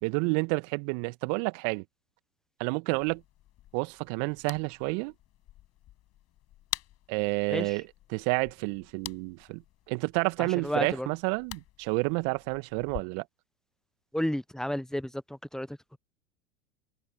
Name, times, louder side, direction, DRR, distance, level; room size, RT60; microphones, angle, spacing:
voice 1, 0.0-1.8 2.6-3.2 3.7-5.1 7.1-9.6 9.9-13.2, right 34 dB, 50° right, 2.2 m, -30 dB
sound 1, 3.0-13.0, left 14 dB, 35° left, 6.9 m, -46 dB
voice 2, 10.4-11.1 14.1-15.2 15.5-16.0, equal, ahead, 1.0 m, -32 dB
figure-of-eight pair, 90°, 41 cm